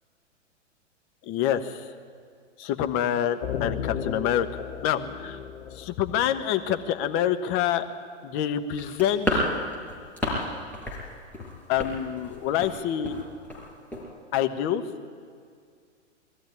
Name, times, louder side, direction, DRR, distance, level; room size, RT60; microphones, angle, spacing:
voice 1, 1.3-1.8 2.6-5.4 5.7-7.9 8.2-9.5 11.7-13.2 14.3-14.8, left 10 dB, 35° left, 8 dB, 1.3 m, -26 dB
sound 1, 3.4-7.0, left 7 dB, 65° left, 2.4 m, -35 dB
sound 2, 8.8-10.5 10.7-11.0 11.3-12.7 13.0-13.2 13.5-13.6 13.9-14.0, left 1 dB, 5° left, 5.3 m, -29 dB
21.0 x 14.0 x 9.8 m, 2.1 s
hypercardioid pair, 120°, 37 cm